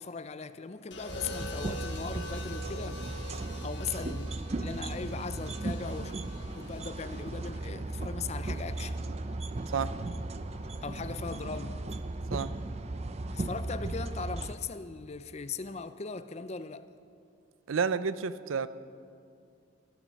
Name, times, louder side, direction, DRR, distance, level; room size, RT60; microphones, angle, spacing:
voice 1, 0.0-3.0 3.6-6.2 6.5-9.0 10.8-11.8 13.3-16.9, left 5 dB, 35° left, 0.5 m, -39 dB
sound 1, 0.9-9.1 10.3-10.7, left 1 dB, 60° left, 1.7 m, -46 dB
sound 2, 1.1-14.5, right 2 dB, 30° right, 0.5 m, -36 dB
voice 2, 17.7-18.7, right 6 dB, 85° right, 0.5 m, -30 dB
14.5 x 12.5 x 6.4 m
head